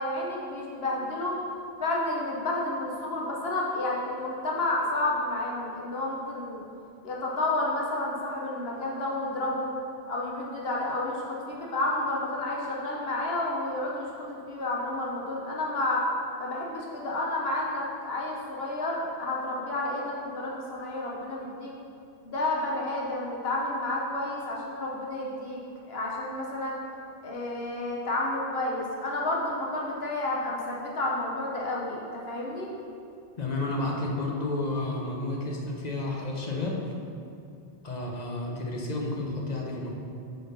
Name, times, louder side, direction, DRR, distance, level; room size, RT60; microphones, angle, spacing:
voice 1, 0.0-1.4 1.8-6.6 7.0-9.7 10.1-16.1 16.4-21.7 22.2-25.6 25.9-26.8 27.2-32.7, left 2 dB, 70° left, -3 dB, 1.1 m, -30 dB
voice 2, 33.4-36.9 37.8-39.9, left 2 dB, 45° left, -1 dB, 0.9 m, -31 dB
6.9 x 3.9 x 5.5 m, 2.5 s
omnidirectional pair, 1.1 m